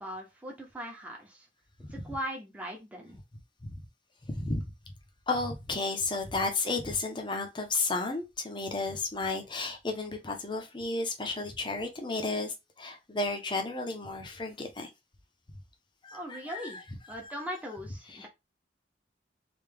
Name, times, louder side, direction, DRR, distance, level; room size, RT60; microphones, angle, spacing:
voice 1, 0.0-1.5 1.9-3.2 16.1-16.8 17.1-18.3, equal, 10° right, 1.0 m, -39 dB
voice 2, 4.3-4.6 5.3-14.9 16.0-16.8 17.2-17.4 18.1-18.3, left 3 dB, 25° left, 0.8 m, -33 dB
3.4 x 2.8 x 3.4 m
head